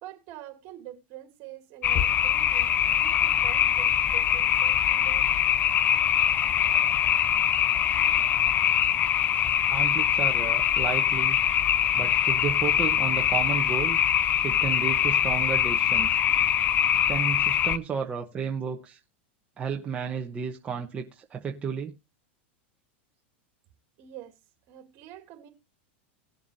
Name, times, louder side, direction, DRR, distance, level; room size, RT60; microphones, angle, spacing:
voice 1, 0.0-5.3 24.0-24.3 24.7-25.5, right 13 dB, 45° right, 2.7 m, -45 dB
sound 1, 1.8-17.8, left 10 dB, 25° left, 0.5 m, -23 dB
voice 2, 9.7-11.4 11.9-14.0 14.4-16.2 17.1-19.0 19.6-21.9, right 6 dB, 20° right, 1.0 m, -32 dB
18.5 x 7.1 x 2.7 m
supercardioid pair, 140°, 6 cm